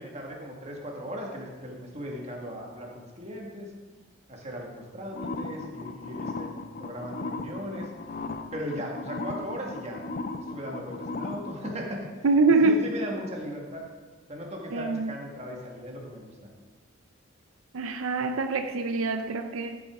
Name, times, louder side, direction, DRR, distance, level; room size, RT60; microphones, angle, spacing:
voice 1, 0.0-3.7 4.3-7.9 8.5-10.0 10.4-12.1 12.6-13.8 14.3-16.5, equal, 30° right, -1 dB, 1.7 m, -37 dB
sound 1, 5.1-11.7, left 3 dB, 45° left, 0.5 m, -36 dB
voice 2, 12.2-12.8 14.7-15.1 17.7-19.8, right 3 dB, 85° right, 7 dB, 0.6 m, -24 dB
13.5 x 8.2 x 3.6 m, 1.4 s
head